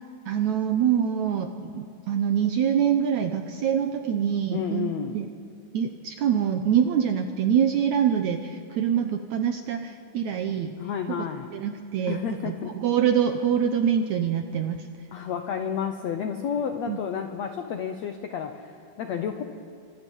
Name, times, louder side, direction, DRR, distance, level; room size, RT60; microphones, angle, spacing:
voice 1, 0.2-5.3 5.7-10.7 11.2-11.3 11.5-14.8 16.9-17.0, right 8 dB, 75° right, 6 dB, 1.8 m, -25 dB
voice 2, 4.5-5.1 10.8-11.5 12.1-12.7 15.1-19.4, left 7 dB, 75° left, 6 dB, 1.5 m, -31 dB
30.0 x 25.0 x 5.5 m, 2.3 s
omnidirectional pair, 4.3 m